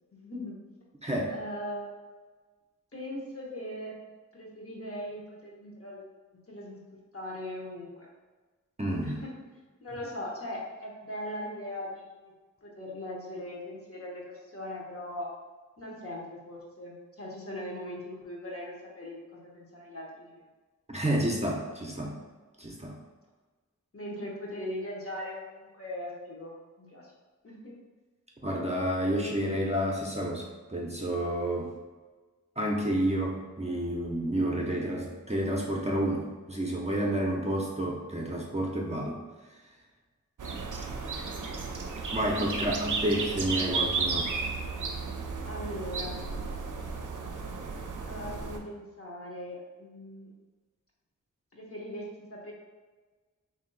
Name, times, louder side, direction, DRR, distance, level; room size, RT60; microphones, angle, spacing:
voice 1, 0.1-0.6 1.3-1.9 2.9-4.0 4.3-6.0 6.5-8.1 9.0-9.3 9.8-12.3 12.6-15.3 15.8-20.4 23.9-27.1 27.4-27.7 41.2-41.5 42.2-42.3 42.7-42.8 43.1-43.2 45.4-46.2 48.1-50.3 51.5-52.5, left 1 dB, 45° left, -3 dB, 1.0 m, -40 dB
voice 2, 1.0-1.3 8.8-9.2 20.9-22.2 22.6-23.0 28.4-31.7 32.6-39.2 42.1-44.3, right 1 dB, 20° right, -2 dB, 0.6 m, -30 dB
sound 1, 40.4-48.6, right 4 dB, 80° right, 0.5 m, -34 dB
3.0 x 2.7 x 3.9 m, 1.3 s
wide cardioid pair, 50°, 31 cm